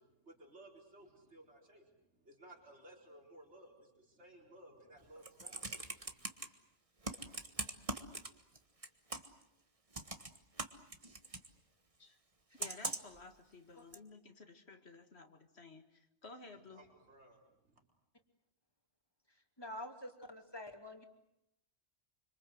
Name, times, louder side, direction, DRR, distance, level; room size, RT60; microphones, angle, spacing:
voice 1, 0.0-6.4 16.7-17.8, right 1 dB, 70° right, 0 dB, 4.7 m, -59 dB
Computer keyboard, 5.0-6.5 7.0-8.6 8.8-9.4 9.9-11.5 12.6-13.2 13.9-14.0, right 2 dB, 30° right, 1.6 m, -41 dB
voice 2, 12.5-16.9, left 3 dB, 60° left, 7 dB, 2.2 m, -54 dB
voice 3, 19.3-21.1, left 1 dB, 20° left, 4 dB, 2.8 m, -47 dB
26.5 x 25.5 x 8.0 m, 0.80 s
omnidirectional pair, 1.2 m